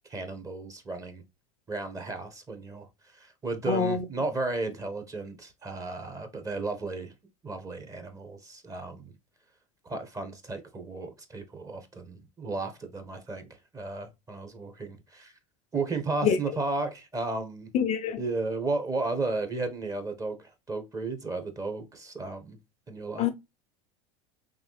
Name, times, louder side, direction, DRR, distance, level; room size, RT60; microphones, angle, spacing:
voice 1, 0.1-1.2 1.7-7.1 7.4-9.1 9.8-15.3 15.7-17.7 18.2-22.6 22.9-23.3, right 3 dB, 20° right, 1.3 m, -34 dB
voice 2, 3.7-4.0 16.2-16.4 17.7-18.2 23.2-23.3, left 7 dB, 40° left, 0.6 m, -25 dB
3.9 x 3.3 x 3.2 m
hypercardioid pair, 90°, 17 cm